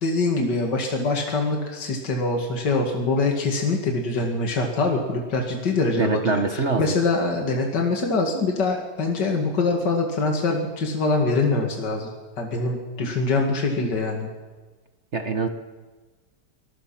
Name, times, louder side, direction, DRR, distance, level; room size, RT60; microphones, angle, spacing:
voice 1, 0.0-12.1 12.4-14.3, left 3 dB, 65° left, 1 dB, 2.9 m, -24 dB
voice 2, 6.0-6.9 15.1-15.5, right 4 dB, 40° right, 7 dB, 1.4 m, -24 dB
24.0 x 20.5 x 6.0 m, 1.3 s
omnidirectional pair, 2.0 m